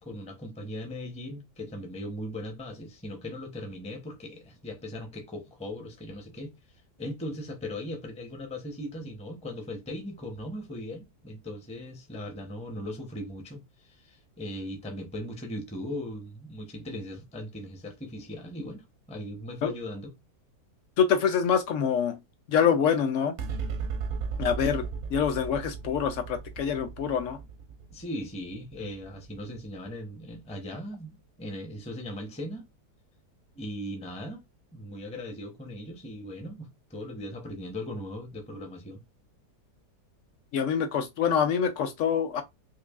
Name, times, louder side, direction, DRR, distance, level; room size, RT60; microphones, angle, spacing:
voice 1, 0.0-6.5 7.0-20.1 27.9-32.7 33.5-34.4 34.7-39.0, left 1 dB, 10° left, 0.4 m, -38 dB
voice 2, 21.0-22.2 22.5-23.3 24.4-24.9 25.1-27.4 40.5-42.4, left 7 dB, 70° left, 0.7 m, -25 dB
sound 1, 23.4-30.1, right 5 dB, 65° right, 0.7 m, -36 dB
4.6 x 2.6 x 2.4 m
omnidirectional pair, 1.7 m